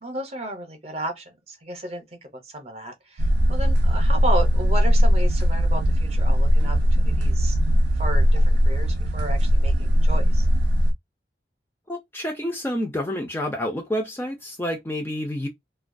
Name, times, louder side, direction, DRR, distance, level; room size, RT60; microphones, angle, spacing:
voice 1, 0.0-7.6 8.0-10.5, right 1 dB, 35° right, 0.6 m, -33 dB
sound 1, 3.2-10.9, equal, 75° right, 0.4 m, -19 dB
voice 2, 11.9-15.5, left 1 dB, 10° left, 0.4 m, -28 dB
2.2 x 2.2 x 2.5 m
head